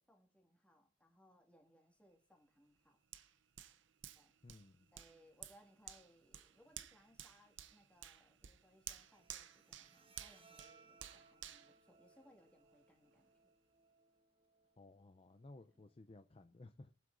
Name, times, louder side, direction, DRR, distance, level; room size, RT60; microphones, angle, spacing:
voice 1, 0.0-3.0 4.1-4.3 4.9-13.5 15.7-15.8, equal, 5° left, 2.0 m, -68 dB
Hands, 3.1-12.6 13.1-13.2, right 11 dB, 65° right, 0.7 m, -54 dB
voice 2, 4.4-4.9 14.8-16.9, left 2 dB, 30° left, 0.5 m, -58 dB
Bowed string instrument, 8.9-15.9, right 4 dB, 25° right, 1.1 m, -68 dB
22.5 x 7.8 x 2.6 m
head